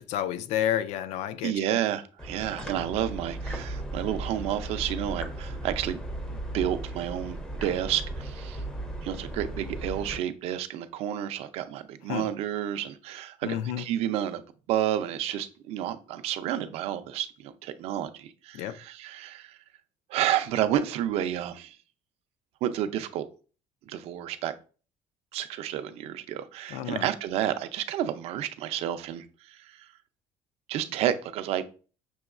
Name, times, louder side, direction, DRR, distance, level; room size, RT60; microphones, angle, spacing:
voice 1, 0.0-1.8 12.1-12.3 13.4-13.9 18.5-18.8 26.7-27.1, left 11 dB, 70° left, 0.4 m, -30 dB
voice 2, 1.4-6.0 6.3-8.6 9.0-14.4 14.7-19.6 20.1-21.8 22.6-23.3 23.9-24.5 25.3-29.9 30.7-31.6, right 11 dB, 60° right, 0.4 m, -30 dB
sound 1, 2.2-10.2, right 1 dB, 5° left, 0.5 m, -36 dB
6.1 x 3.0 x 2.4 m
cardioid pair, 170°, 12 cm